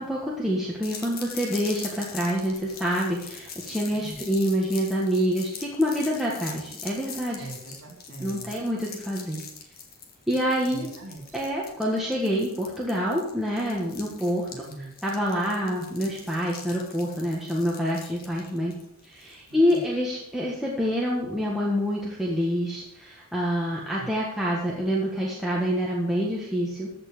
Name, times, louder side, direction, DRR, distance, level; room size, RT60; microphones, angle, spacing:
voice 1, 0.0-7.5 8.2-9.4 10.3-10.9 11.3-18.7 19.0-26.9, equal, ahead, -5 dB, 1.5 m, -27 dB
sound 1, 0.8-19.9, left 5 dB, 45° left, 1.8 m, -43 dB
voice 2, 7.3-8.5 10.7-11.2 14.5-14.9 19.7-19.8 24.0-24.1, right 2 dB, 75° right, 2 dB, 2.9 m, -41 dB
14.5 x 5.6 x 6.6 m, 0.79 s
head